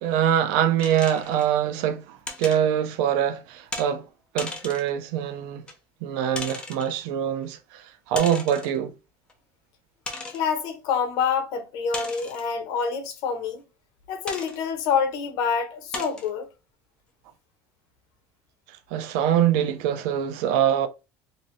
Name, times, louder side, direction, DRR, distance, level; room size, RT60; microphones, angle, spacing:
voice 1, 0.0-4.1 4.3-5.7 6.0-8.9 18.9-20.9, right 9 dB, 80° right, 0.5 m, -24 dB
sound 1, 0.8-1.5 2.3-2.6 3.7-3.9 4.4-4.9 5.7-5.8 6.3-6.9 8.1-8.8 9.3-9.4 10.1-10.5 11.9-12.5 14.3-14.6 15.2-15.3 15.9-16.3, left 3 dB, 15° left, 0.6 m, -36 dB
voice 2, 10.3-13.6 14.1-16.5, left 6 dB, 65° left, 0.9 m, -27 dB
2.7 x 2.6 x 3.1 m
cardioid pair, 160°, 7 cm